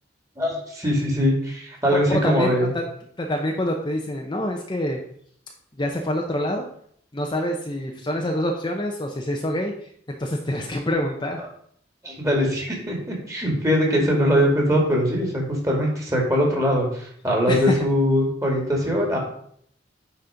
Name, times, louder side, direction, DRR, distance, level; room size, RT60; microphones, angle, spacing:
voice 1, 0.4-2.7 12.0-19.2, equal, 15° right, -1 dB, 2.4 m, -22 dB
voice 2, 1.9-2.8 3.2-5.0 5.8-6.7 7.1-9.7 10.1-11.4 17.5-17.8, left 1 dB, 25° left, 2 dB, 0.8 m, -26 dB
9.3 x 4.3 x 5.1 m, 0.64 s
head